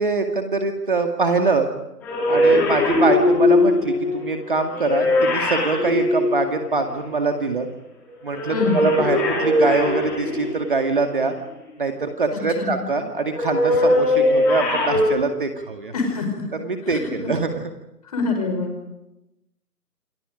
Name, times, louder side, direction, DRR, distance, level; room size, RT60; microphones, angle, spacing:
voice 1, 0.0-1.7 2.3-7.7 8.2-11.4 11.8-15.9 16.6-17.6, right 3 dB, 35° right, 5 dB, 2.0 m, -23 dB
sound 1, 2.0-7.0 8.3-10.8 13.3-15.1, left 1 dB, 5° left, 2.1 m, -20 dB
voice 2, 8.5-8.8 12.3-12.7 15.9-16.5 16.9-17.3 18.1-18.7, left 4 dB, 25° left, 4 dB, 4.9 m, -25 dB
28.0 x 27.0 x 5.1 m, 0.90 s
figure-of-eight pair, 165°, 47 cm